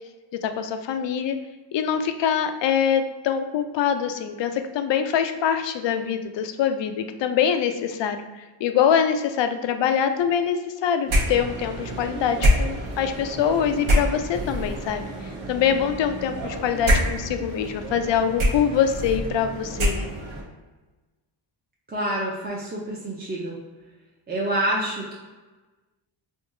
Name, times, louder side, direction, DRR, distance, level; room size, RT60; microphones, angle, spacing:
voice 1, 0.4-1.4 1.7-8.2 8.6-15.0 15.5-20.1, left 8 dB, 60° left, 8 dB, 0.5 m, -24 dB
sound 1, 11.1-20.4, equal, 70° right, 0.9 m, -26 dB
voice 2, 21.9-23.6 24.3-25.2, right 1 dB, 20° right, -5 dB, 0.6 m, -27 dB
3.6 x 2.7 x 2.6 m, 1.2 s
cardioid pair, 70°, 49 cm